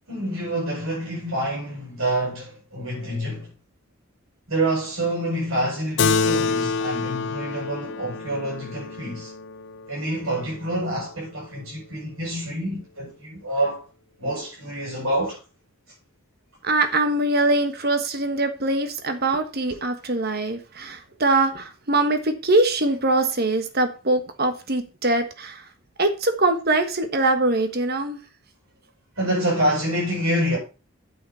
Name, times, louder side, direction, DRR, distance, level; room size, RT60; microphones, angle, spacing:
voice 1, 0.1-3.5 4.5-9.3 9.9-13.8 14.2-15.4 29.2-30.6, right 1 dB, 70° right, 7.4 m, -27 dB
Keyboard (musical), 6.0-10.9, left 4 dB, 55° left, 0.5 m, -27 dB
voice 2, 16.6-25.7 26.0-28.2, right 2 dB, 45° right, 1.4 m, -23 dB
9.1 x 8.9 x 4.3 m
head